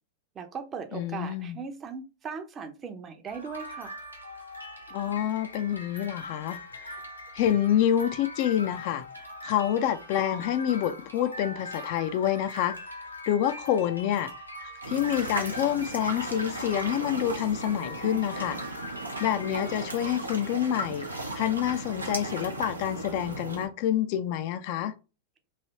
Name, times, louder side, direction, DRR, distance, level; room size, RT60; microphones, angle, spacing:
voice 1, 0.3-4.0, right 6 dB, 25° right, 0.6 m, -38 dB
voice 2, 0.9-1.6 4.9-7.0 7.3-9.0 9.4-12.8 13.3-14.3 14.6-18.6 19.2-24.9, left 10 dB, 50° left, 0.4 m, -27 dB
sound 1, 3.3-19.9, left 1 dB, 90° left, 0.7 m, -42 dB
sound 2, 14.8-23.7, right 2 dB, 85° right, 0.7 m, -36 dB
3.1 x 2.6 x 2.9 m
figure-of-eight pair, 95°, 0 cm